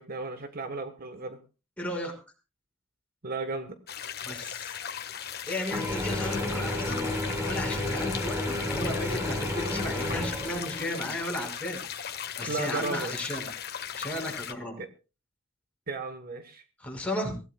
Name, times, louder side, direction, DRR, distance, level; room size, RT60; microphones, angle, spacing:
voice 1, 0.0-1.4 3.2-3.8 12.5-13.4 14.8-14.9 15.9-16.6, right 3 dB, 45° right, 8 dB, 1.3 m, -35 dB
voice 2, 1.8-2.1 4.3-4.7 5.5-7.0 7.4-8.4 8.7-11.8 12.4-13.5 13.9-14.7 16.8-17.4, left 1 dB, 5° left, 0 dB, 5.6 m, -34 dB
sound 1, 3.9-14.5, left 8 dB, 50° left, 1.4 m, -38 dB
Mechanisms / Drill, 5.7-11.2, left 1 dB, 15° right, 4.3 m, -31 dB
23.5 x 16.5 x 2.3 m, 0.32 s
head